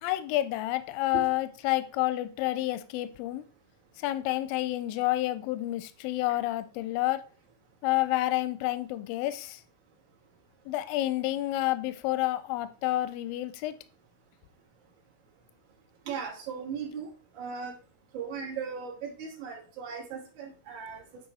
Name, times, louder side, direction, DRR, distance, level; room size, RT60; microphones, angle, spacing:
voice 1, 0.0-3.4 4.0-7.2 7.8-9.6 10.7-13.7, left 16 dB, 85° left, 12 dB, 2.2 m, -29 dB
voice 2, 16.1-17.1 17.3-17.7 18.1-21.0, right 6 dB, 50° right, -1 dB, 1.5 m, -37 dB
8.8 x 4.3 x 4.2 m, 0.37 s
omnidirectional pair, 4.5 m